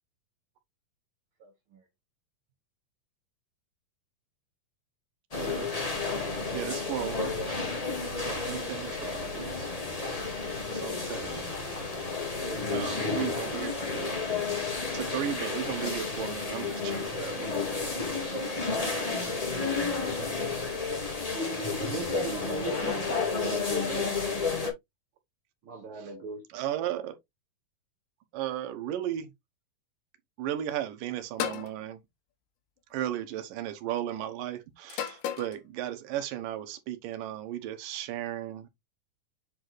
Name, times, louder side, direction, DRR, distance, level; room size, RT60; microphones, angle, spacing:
voice 1, 1.4-1.8 12.4-12.6 23.1-23.2 23.5-24.0 25.6-26.4, right 3 dB, 65° right, 1.3 m, -42 dB
sound 1, 5.3-24.7, left 4 dB, 50° left, 0.4 m, -31 dB
voice 2, 5.4-5.7 6.5-7.4 8.1-9.7 10.7-11.7 12.1-12.3 12.7-14.7 14.9-17.6 19.2-20.4 25.9-26.1 26.5-27.2 28.3-29.3 30.4-32.0 32.9-38.7, right 11 dB, 80° right, 2.6 m, -36 dB
voice 3, 21.8-24.1, right 1 dB, 5° left, 1.1 m, -35 dB
sound 2, 31.4-31.7 32.9-33.3 34.9-35.6, left 10 dB, 75° left, 2.4 m, -33 dB
7.7 x 4.0 x 3.1 m
omnidirectional pair, 4.0 m